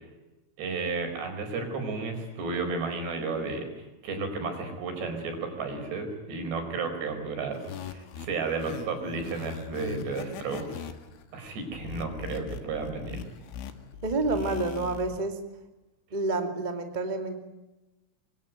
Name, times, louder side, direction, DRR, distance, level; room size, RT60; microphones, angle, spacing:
voice 1, 0.6-10.9 11.3-13.2, right 4 dB, 60° right, 5 dB, 6.8 m, -33 dB
sound 1, 7.5-15.2, left 7 dB, 75° left, 4.2 m, -40 dB
voice 2, 14.0-15.4 16.1-17.4, right 3 dB, 45° right, 6 dB, 0.5 m, -29 dB
26.0 x 23.0 x 9.4 m, 1.0 s
omnidirectional pair, 5.7 m